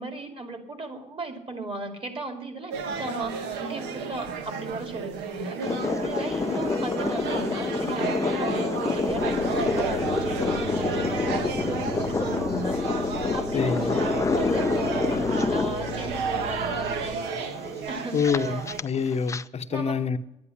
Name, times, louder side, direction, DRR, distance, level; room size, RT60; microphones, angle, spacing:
voice 1, 0.0-17.2 17.9-18.6 19.7-20.0, right 2 dB, 30° right, 2.7 m, -36 dB
sound 1, 2.7-18.8, right 5 dB, 90° right, 1.4 m, -33 dB
sound 2, 5.6-19.4, left 4 dB, 20° left, 0.4 m, -28 dB
sound 3, 9.1-17.1, right 3 dB, 70° right, 7.8 m, -39 dB
voice 2, 13.5-13.9 18.1-20.2, left 6 dB, 40° left, 0.8 m, -26 dB
10.5 x 9.8 x 9.9 m
cardioid pair, 110°, 17 cm